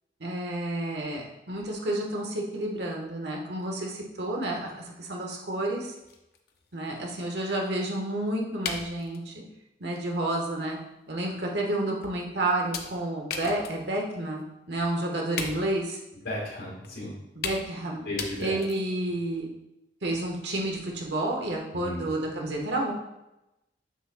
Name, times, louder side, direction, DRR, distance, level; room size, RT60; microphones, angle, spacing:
voice 1, 0.2-5.9 6.7-9.4 9.8-10.8 11.1-16.0 17.3-18.1 18.4-19.5 20.0-22.9, right 1 dB, 70° right, 0 dB, 1.4 m, -30 dB
sound 1, 5.6-5.7 6.0-7.9 8.6-9.3 9.9-10.1 10.5-10.6 11.3-11.4 12.0-12.3 12.7-14.1 14.4-14.5 14.8-14.9 15.4-15.9 16.8-16.9 17.4-17.8 18.2-19.0, left 5 dB, 55° left, 0.7 m, -37 dB
voice 2, 16.2-17.1 18.0-18.6 21.7-22.0, left 1 dB, 75° left, -6 dB, 2.0 m, -34 dB
7.6 x 6.6 x 2.3 m, 0.93 s
head